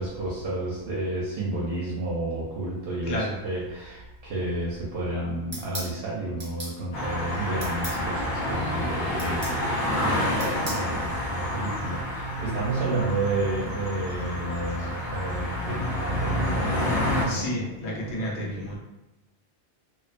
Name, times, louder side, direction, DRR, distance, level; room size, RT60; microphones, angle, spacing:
voice 1, 0.0-9.6 10.0-18.7, right 2 dB, 65° right, -5 dB, 0.8 m, -31 dB
voice 2, 3.0-3.4 17.2-18.8, left 1 dB, 70° left, -3 dB, 0.9 m, -31 dB
sound 1, 5.5-5.9 6.4-6.8 7.6-8.0 9.2-9.6 10.4-10.9, right 1 dB, 25° right, 0.4 m, -36 dB
sound 2, 6.9-17.3, equal, 45° left, 0.6 m, -28 dB
2.4 x 2.2 x 2.4 m, 0.99 s
omnidirectional pair, 1.2 m